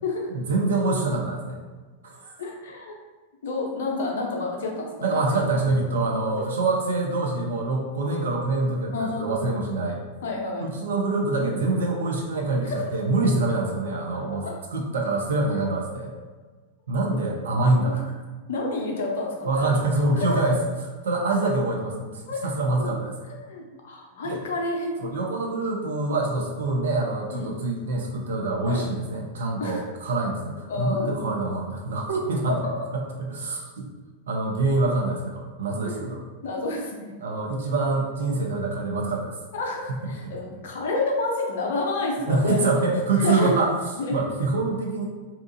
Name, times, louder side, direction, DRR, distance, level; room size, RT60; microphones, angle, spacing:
voice 1, 0.3-1.6 2.0-2.4 5.0-10.0 10.6-14.4 14.7-16.1 16.9-18.0 19.4-20.5 21.0-23.1 24.2-24.4 25.0-33.9 34.3-36.2 37.2-39.4 39.9-40.0 40.2-40.3 42.3-43.7 44.1-45.1, right 2 dB, 65° right, 0 dB, 0.5 m, -25 dB
voice 2, 2.4-3.0 3.4-5.1 8.9-9.5 10.2-10.7 12.6-12.8 14.4-14.5 17.8-18.0 18.5-19.8 20.2-20.6 22.3-22.4 22.8-23.0 23.4-25.0 27.3-27.5 28.6-28.8 29.6-29.8 30.7-31.3 32.5-32.7 35.8-36.1 36.4-37.2 39.5-42.7 43.2-43.6 44.0-44.2, left 3 dB, 60° left, 0 dB, 0.5 m, -29 dB
2.7 x 2.3 x 2.5 m, 1.3 s
figure-of-eight pair, 90°, 0 cm